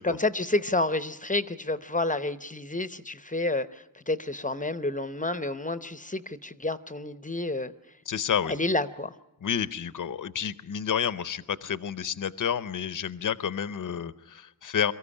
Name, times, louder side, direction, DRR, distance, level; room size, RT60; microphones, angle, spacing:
voice 1, 0.0-7.7 8.5-9.1, left 2 dB, 20° left, 13 dB, 0.7 m, -29 dB
voice 2, 8.1-8.5 9.4-14.9, left 8 dB, 55° left, 15 dB, 0.7 m, -30 dB
23.0 x 14.5 x 9.9 m, 0.95 s
wide cardioid pair, 85°, 39 cm